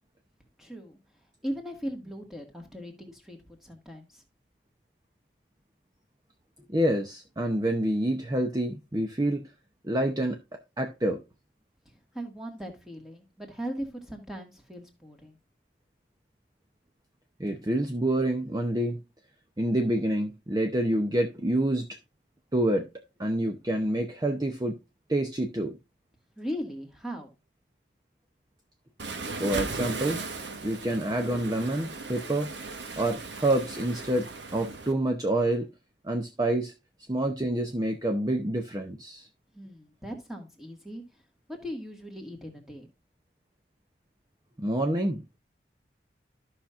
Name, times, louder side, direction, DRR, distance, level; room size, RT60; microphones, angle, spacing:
voice 1, 0.6-1.0 1.4-4.2 12.1-15.4 26.4-27.3 39.5-41.0 41.5-42.9, equal, ahead, 1.9 m, -38 dB
voice 2, 6.7-9.4 9.8-10.4 10.8-11.2 17.4-19.0 19.6-22.0 22.5-22.9 23.2-24.8 25.1-25.8 29.4-30.3 30.6-32.5 32.9-34.3 34.5-35.7 36.0-36.7 37.1-39.3 44.6-45.2, right 1 dB, 20° right, 0.6 m, -27 dB
Waves surf, 29.0-34.9, right 3 dB, 80° right, 1.3 m, -37 dB
14.0 x 5.8 x 2.5 m
head